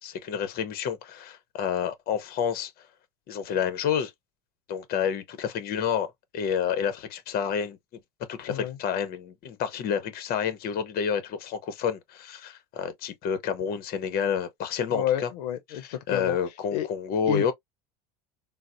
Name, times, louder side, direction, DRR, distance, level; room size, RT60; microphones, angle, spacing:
voice 1, 0.0-2.7 3.3-4.1 4.7-7.8 8.3-15.3 16.1-17.5, left 7 dB, 50° left, 0.8 m, -29 dB
voice 2, 14.9-16.4 16.7-16.9 17.3-17.5, left 11 dB, 90° left, 0.6 m, -30 dB
3.9 x 2.0 x 2.4 m
supercardioid pair, 110°, 20 cm